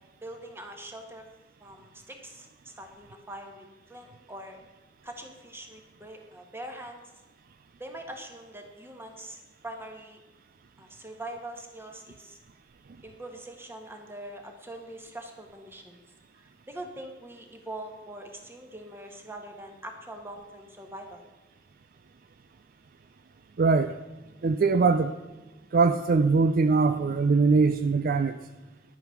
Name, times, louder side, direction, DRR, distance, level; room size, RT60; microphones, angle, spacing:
voice 1, 0.2-1.2 1.6-4.6 5.0-7.1 7.8-10.2 10.8-12.4 13.0-16.0 16.3-21.2, right 1 dB, 15° right, 3 dB, 1.6 m, -43 dB
voice 2, 23.6-24.0 24.4-25.1 25.7-28.4, right 4 dB, 50° right, 10 dB, 0.4 m, -22 dB
11.0 x 9.0 x 5.9 m, 1.1 s
head